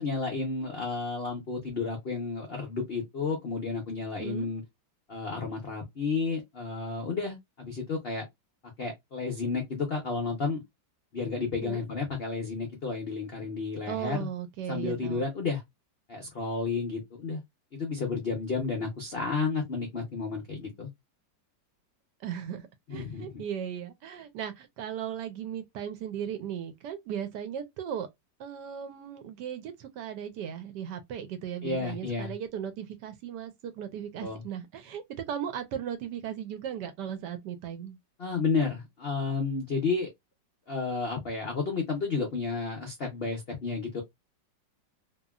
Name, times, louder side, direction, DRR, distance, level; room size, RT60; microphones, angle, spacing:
voice 1, 0.0-4.6 5.1-8.2 8.8-10.6 11.1-14.3 14.7-15.6 16.1-17.4 17.7-20.9 22.9-23.3 31.6-32.3 34.2-34.4 38.2-40.1 40.7-44.0, left 4 dB, 70° left, 0.5 m, -31 dB
voice 2, 13.9-15.2 22.2-28.1 28.4-38.0, right 9 dB, 75° right, 1.1 m, -37 dB
2.9 x 2.6 x 2.3 m
omnidirectional pair, 2.0 m